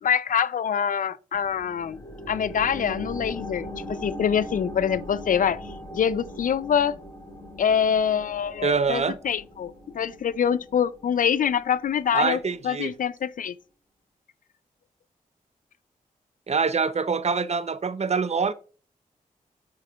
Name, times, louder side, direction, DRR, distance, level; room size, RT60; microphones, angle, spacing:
voice 1, 0.0-2.0 2.3-5.6 5.9-7.0 7.6-13.5, left 8 dB, 60° left, 0.4 m, -25 dB
sound 1, 1.3-12.4 12.8-12.9, equal, 25° left, 2.9 m, -40 dB
voice 2, 8.6-9.2 12.1-12.9 16.5-18.5, right 5 dB, 45° right, 0.6 m, -25 dB
9.2 x 4.9 x 2.3 m
supercardioid pair, 40°, 15 cm